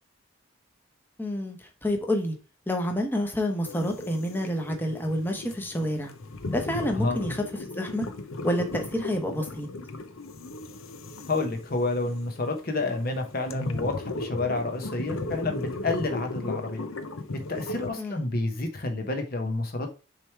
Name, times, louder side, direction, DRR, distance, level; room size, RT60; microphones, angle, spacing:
voice 1, 1.2-2.4 2.7-6.1 6.5-7.4 7.7-8.1 8.4-9.7 18.0-18.3, equal, 10° left, 1.0 m, -28 dB
sound 1, 3.7-17.9, left 2 dB, 80° left, 0.8 m, -37 dB
voice 2, 11.3-16.9 17.3-19.9, left 2 dB, 45° left, 1.0 m, -29 dB
6.9 x 3.3 x 4.5 m
head